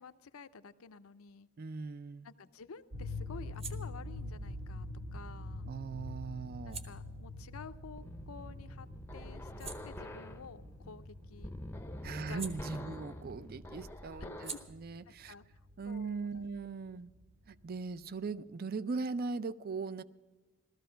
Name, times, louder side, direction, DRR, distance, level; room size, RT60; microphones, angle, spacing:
voice 1, 0.0-1.5 2.2-4.9 5.1-5.7 6.6-8.9 9.1-11.6 12.3-13.1 14.2-14.6 15.1-15.4 15.8-16.3 16.8-17.0, left 5 dB, 85° left, 0.6 m, -51 dB
voice 2, 1.6-2.3 5.7-6.8 12.0-15.3 15.8-17.1 17.5-20.0, right 4 dB, 45° right, 0.4 m, -39 dB
sound 1, 1.8-8.7 9.1-13.3 13.6-17.0, right 5 dB, 30° right, 1.0 m, -53 dB
sound 2, 2.9-17.8, left 2 dB, 75° right, 1.2 m, -46 dB
sound 3, 8.0-14.7, left 1 dB, 10° left, 0.6 m, -46 dB
16.0 x 13.5 x 5.7 m
head